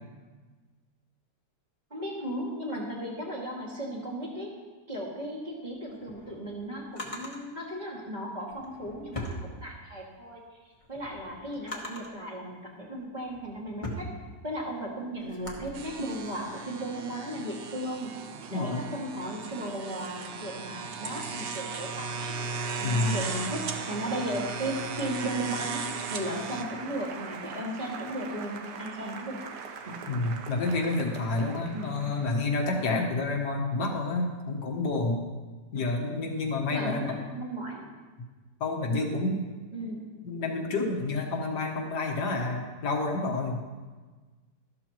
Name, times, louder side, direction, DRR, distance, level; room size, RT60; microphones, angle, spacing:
voice 1, 1.9-4.5 4.9-10.4 10.9-14.1 14.4-18.1 18.5-22.4 22.8-29.4 29.9-30.0 31.7-31.9 36.7-37.9 39.7-40.0, right 1 dB, 25° right, -3 dB, 2.3 m, -36 dB
Drawer open or close, 5.8-7.4 8.4-10.1 10.5-12.2 12.9-15.7, left 1 dB, 20° left, 1.4 m, -41 dB
sound 1, 15.7-26.6, right 5 dB, 55° right, 0.6 m, -37 dB
voice 2, 18.5-18.8 22.8-23.2 30.1-35.2 35.7-37.2 38.6-39.4 40.3-43.6, left 3 dB, 75° left, 1 dB, 2.0 m, -29 dB
Applause, 20.3-32.7, right 6 dB, 80° right, 1.5 m, -43 dB
13.0 x 12.5 x 3.0 m, 1.3 s
omnidirectional pair, 1.8 m